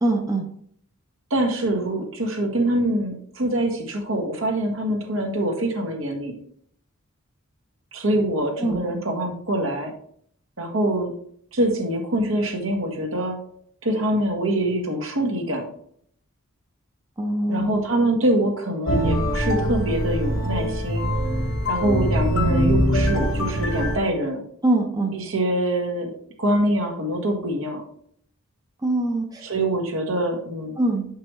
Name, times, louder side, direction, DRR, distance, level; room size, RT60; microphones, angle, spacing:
voice 1, 0.0-0.5 8.6-8.8 17.2-17.8 24.6-25.1 28.8-29.5 30.8-31.1, right 2 dB, 20° right, 2 dB, 0.7 m, -23 dB
voice 2, 1.3-6.4 7.9-9.9 10.6-11.1 11.5-13.4 13.8-15.7 17.5-21.1 21.7-24.4 25.1-26.1 26.4-27.8 29.4-30.8, right 1 dB, 70° right, 2 dB, 1.5 m, -24 dB
sound 1, 18.9-24.0, equal, 65° left, 1.0 m, -22 dB
6.6 x 5.5 x 3.1 m, 0.62 s
head